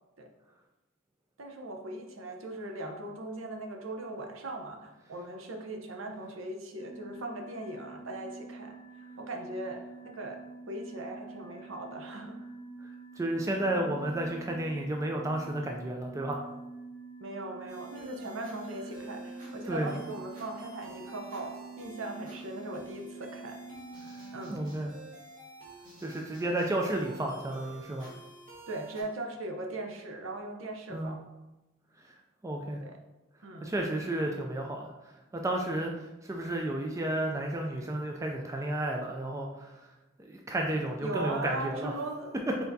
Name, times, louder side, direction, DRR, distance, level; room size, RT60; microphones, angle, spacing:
voice 1, 1.4-8.8 9.2-10.4 10.7-12.4 17.2-23.6 24.3-24.7 26.4-26.5 28.7-31.2 32.8-33.0 33.4-33.8 41.0-42.3, right 2 dB, 65° right, 3 dB, 0.7 m, -39 dB
sound 1, 6.8-24.6, right 3 dB, 20° left, 0.9 m, -47 dB
voice 2, 13.2-16.4 19.6-19.9 24.5-24.9 26.0-28.1 30.9-31.1 32.0-32.1 32.4-32.8 33.6-34.9 35.3-39.9 40.3-41.9, right 1 dB, 15° right, 1 dB, 0.3 m, -32 dB
sound 2, 17.7-29.0, right 1 dB, 40° right, 1.3 m, -50 dB
4.5 x 4.4 x 2.7 m, 1.1 s
head